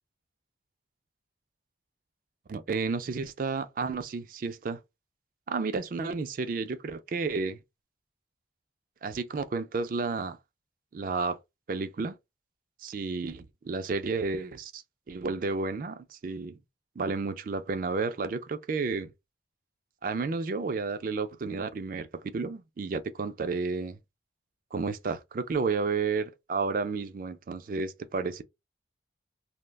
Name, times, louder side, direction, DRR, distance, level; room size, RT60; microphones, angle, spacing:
voice 1, 2.5-4.8 5.5-7.6 9.0-10.4 10.9-11.4 11.7-12.2 12.8-16.6 17.0-19.1 20.0-24.0 24.7-28.4, right 4 dB, 45° right, 0.4 m, -31 dB
2.3 x 2.1 x 3.3 m
head